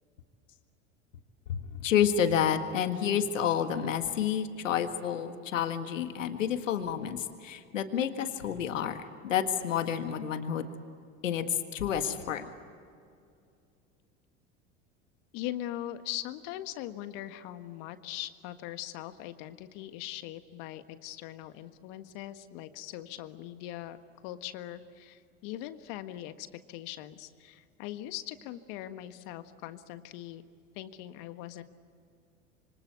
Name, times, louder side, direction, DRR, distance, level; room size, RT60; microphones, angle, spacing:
voice 1, 1.8-10.7 11.2-12.4, left 8 dB, 85° left, 8 dB, 1.8 m, -29 dB
voice 2, 15.3-24.0 24.2-30.4 30.7-31.6, left 13 dB, 60° left, 10 dB, 1.6 m, -41 dB
27.0 x 25.0 x 8.3 m, 2.4 s
hypercardioid pair, 80°, 38 cm